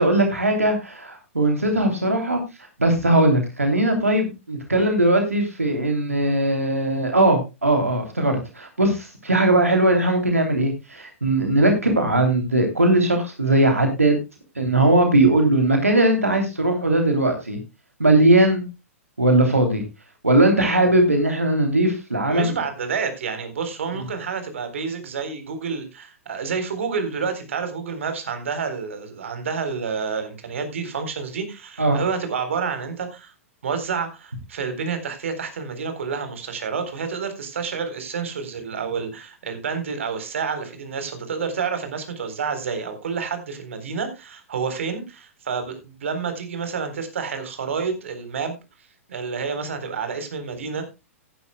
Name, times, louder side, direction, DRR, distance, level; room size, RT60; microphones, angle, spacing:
voice 1, 0.0-2.4 2.8-14.2 14.5-17.6 18.0-18.6 19.2-19.8 20.2-22.6 31.8-32.0, right 1 dB, 80° right, 4 dB, 3.1 m, -19 dB
voice 2, 22.3-33.3 33.6-48.6 49.1-50.9, right 5 dB, 60° right, 8 dB, 4.0 m, -29 dB
17.5 x 11.0 x 2.3 m, 0.26 s
figure-of-eight pair, 105°, 8 cm